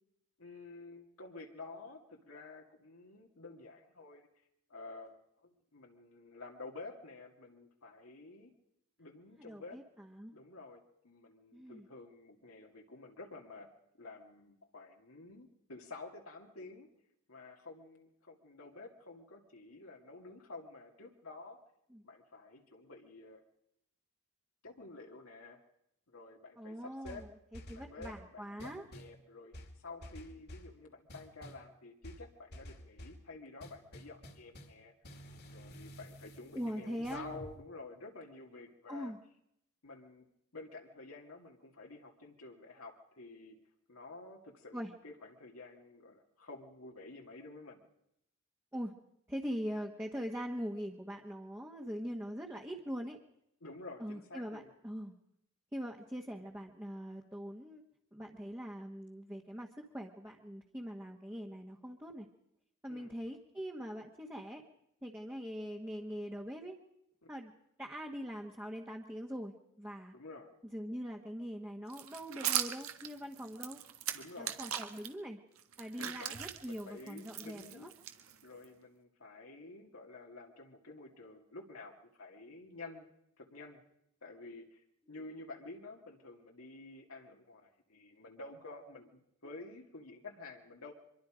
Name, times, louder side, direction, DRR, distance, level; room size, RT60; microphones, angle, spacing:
voice 1, 0.4-4.3 4.7-8.5 9.0-9.8 10.3-13.7 14.0-16.9 17.3-21.6 22.0-23.4 24.6-25.6 26.1-27.3 27.7-34.9 35.5-39.1 39.8-40.3 40.5-43.6 43.9-47.8 53.6-54.7 62.9-63.2 67.2-67.3 70.1-70.5 74.1-74.6 76.0-76.4 76.7-77.9 78.4-83.1 83.4-83.8 84.2-84.8 85.1-90.9, left 3 dB, 85° left, 1 dB, 2.3 m, -50 dB
voice 2, 9.4-10.3 11.5-11.9 21.9-22.0 26.6-27.3 27.7-28.8 36.5-37.2 38.9-39.2 44.7-44.9 48.7-48.9 49.3-53.2 54.0-55.1 55.7-57.8 58.1-62.3 62.8-64.6 65.0-66.8 67.3-67.5 67.8-70.1 70.7-73.8 74.4-75.4 75.8-77.9, equal, 10° right, 0 dB, 1.3 m, -42 dB
sound 1, 27.0-28.3 28.6-29.2 29.5-30.7 31.1-31.7 32.0-33.2 33.6-34.8 35.0-37.5, equal, 50° left, 2.2 m, -51 dB
sound 2, 71.9-75.1 75.6-78.6, right 10 dB, 85° right, 1.6 m, -39 dB
24.5 x 22.5 x 5.1 m, 0.78 s
head